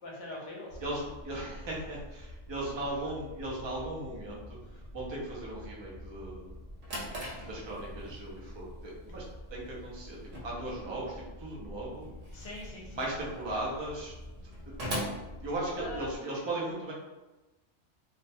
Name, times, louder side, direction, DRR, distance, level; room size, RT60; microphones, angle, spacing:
voice 1, 0.0-0.8 2.8-3.1 12.3-13.0 15.8-16.2, left 1 dB, 65° left, -4 dB, 0.9 m, -42 dB
sound 1, 0.7-16.2, left 1 dB, 30° left, 0.3 m, -47 dB
voice 2, 0.8-4.4 4.9-6.5 7.4-9.2 9.5-12.1 12.9-14.2 14.6-14.7 15.4-16.9, right 1 dB, 40° right, -4 dB, 0.4 m, -37 dB
Drawer open or close, 6.5-16.2, equal, 85° right, 1.0 m, -43 dB
2.5 x 2.0 x 2.6 m, 1.1 s
omnidirectional pair, 1.3 m